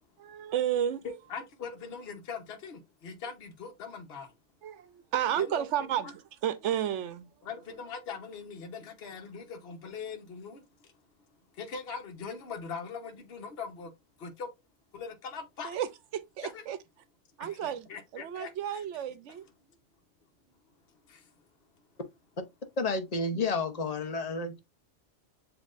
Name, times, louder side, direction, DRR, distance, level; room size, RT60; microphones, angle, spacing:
voice 1, 0.2-1.0 4.6-7.3 15.6-16.8 17.4-17.9 18.1-19.4, right 10 dB, 85° right, 0.9 m, -32 dB
voice 2, 1.0-4.4 5.4-6.1 7.4-10.9 11.5-13.9 14.2-14.5 14.9-15.8 16.4-16.6 17.4-18.8 21.1-21.3, left 5 dB, 60° left, 1.2 m, -41 dB
voice 3, 22.8-24.6, left 3 dB, 40° left, 0.8 m, -30 dB
7.3 x 2.9 x 2.4 m
omnidirectional pair, 1.2 m